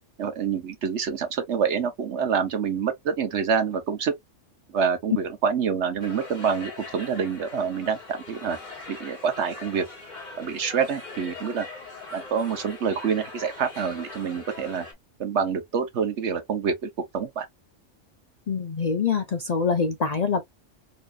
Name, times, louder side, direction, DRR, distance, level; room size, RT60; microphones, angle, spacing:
voice 1, 0.2-4.1 4.7-8.6 8.9-9.8 10.4-11.7 12.1-14.9 15.2-17.5, right 6 dB, 65° right, 1.2 m, -27 dB
sound 1, 6.0-14.9, left 3 dB, 35° left, 1.9 m, -41 dB
voice 2, 18.5-20.4, left 5 dB, 55° left, 0.4 m, -25 dB
4.0 x 2.9 x 2.4 m
omnidirectional pair, 1.3 m